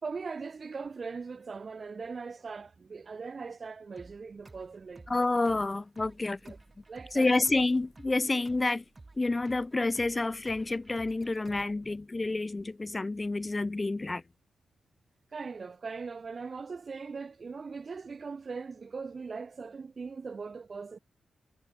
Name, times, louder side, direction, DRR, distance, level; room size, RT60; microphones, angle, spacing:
voice 1, 0.0-5.1 6.4-6.6 6.9-7.3 15.3-21.0, right 4 dB, 35° right, 1.4 m, -40 dB
sound 1, 4.0-12.0, right 2 dB, 20° right, 5.6 m, -54 dB
voice 2, 5.1-6.4 7.1-8.8 9.2-14.2, left 2 dB, 20° left, 0.5 m, -29 dB
wide cardioid pair, 135°, 0 cm